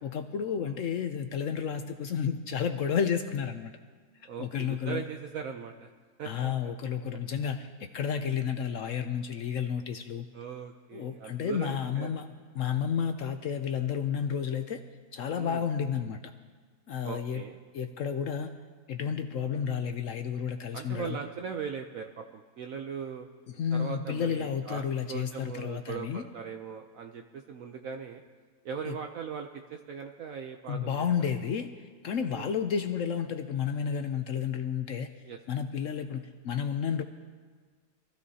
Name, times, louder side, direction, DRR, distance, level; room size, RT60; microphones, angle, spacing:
voice 1, 0.0-3.7 4.2-5.0 6.2-10.3 10.9-12.3 12.5-14.8 15.1-16.3 16.9-17.4 17.7-18.5 18.9-21.2 23.5-26.2 28.9-29.0 30.7-35.1 35.5-37.0, left 7 dB, 65° left, 8 dB, 0.8 m, -31 dB
voice 2, 4.3-5.9 6.2-6.3 6.6-6.7 10.3-12.1 15.4-15.6 17.0-17.6 20.7-23.3 23.7-24.8 25.1-28.2 28.6-31.3 32.3-32.5 35.3-35.4, right 6 dB, 65° right, 4 dB, 1.0 m, -39 dB
23.0 x 14.5 x 2.8 m, 1.5 s
omnidirectional pair, 1.7 m